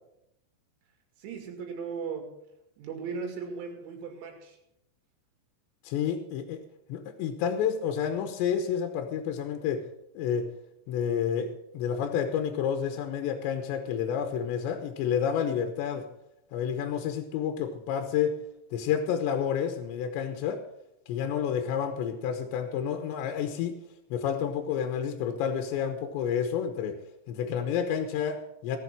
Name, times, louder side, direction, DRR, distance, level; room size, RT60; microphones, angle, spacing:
voice 1, 1.2-2.4 2.8-4.6, right 5 dB, 80° right, 3 dB, 4.6 m, -37 dB
voice 2, 5.8-6.6 6.9-9.8 10.1-10.5 10.9-16.0 16.5-18.4 18.7-20.6 21.1-23.7 24.1-27.0 27.3-28.8, left 8 dB, 80° left, 6 dB, 3.1 m, -29 dB
17.0 x 7.6 x 6.0 m, 0.82 s
omnidirectional pair, 5.4 m